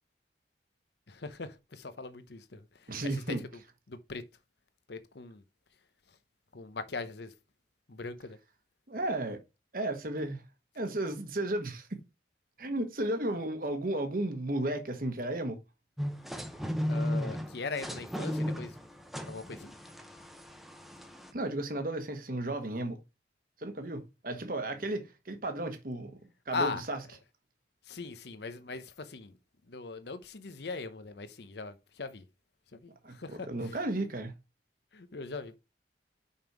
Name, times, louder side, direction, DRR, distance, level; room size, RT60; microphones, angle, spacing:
voice 1, 1.1-3.6 3.9-4.2 4.9-5.4 6.1-6.2 6.5-7.3 7.9-8.4 16.9-18.8 19.3-19.7 26.5-26.9 27.8-29.4 29.7-32.3 32.7-33.8 34.9-35.6, left 4 dB, 65° left, 0.8 m, -40 dB
voice 2, 2.9-3.4 8.9-9.4 9.7-10.4 10.7-12.0 12.6-15.6 21.3-23.0 23.6-26.1 26.5-27.0 33.0-34.3, right 1 dB, 50° right, 1.2 m, -34 dB
sound 1, 16.0-21.3, equal, ahead, 0.7 m, -35 dB
5.6 x 5.3 x 4.5 m
head